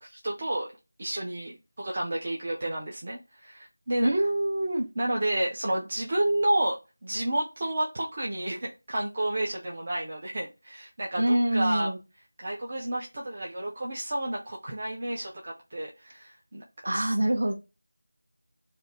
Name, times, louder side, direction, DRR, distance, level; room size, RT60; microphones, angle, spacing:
voice 1, 0.0-0.7 1.0-4.1 5.0-6.8 7.0-11.9 12.4-16.6 16.9-17.1, right 1 dB, 25° right, -2 dB, 0.4 m, -30 dB
voice 2, 4.0-4.9 11.2-12.0 16.8-17.5, right 1 dB, 55° right, 4 dB, 0.9 m, -25 dB
2.7 x 2.5 x 3.9 m, 0.27 s
figure-of-eight pair, 180°, 0 cm